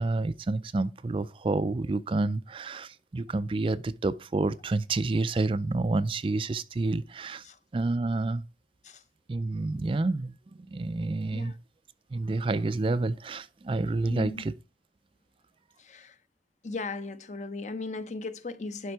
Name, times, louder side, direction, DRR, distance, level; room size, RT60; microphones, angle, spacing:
voice 1, 0.0-7.4 7.7-8.4 9.3-10.4 10.7-11.5 12.1-14.5, right 3 dB, 30° right, 0.4 m, -29 dB
voice 2, 14.1-14.5 15.8-16.2 16.6-18.9, left 3 dB, 40° left, 0.7 m, -37 dB
11.0 x 5.2 x 4.7 m
head